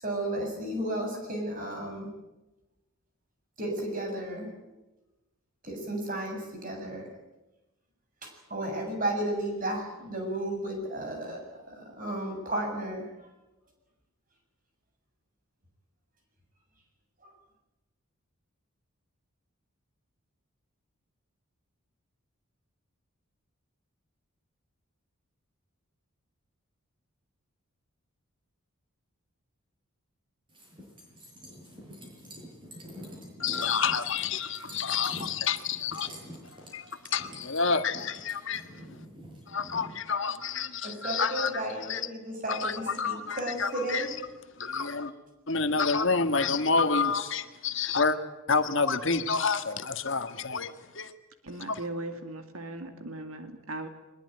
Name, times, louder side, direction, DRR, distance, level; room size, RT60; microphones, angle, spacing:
voice 1, 0.0-2.1 3.6-4.5 5.6-7.1 8.2-11.4 11.7-13.1 40.8-44.1, right 1 dB, 40° right, 7.5 m, -33 dB
sound 1, 30.5-40.0, equal, 20° right, 7.5 m, -46 dB
voice 2, 33.4-36.1 36.5-38.6 39.5-42.1 42.5-44.2 44.6-45.1 45.5-48.2 48.5-51.1 51.7-51.8, left 5 dB, 55° left, 1.6 m, -29 dB
voice 3, 51.4-53.9, right 2 dB, 75° right, 2.3 m, -38 dB
23.0 x 21.0 x 9.4 m
head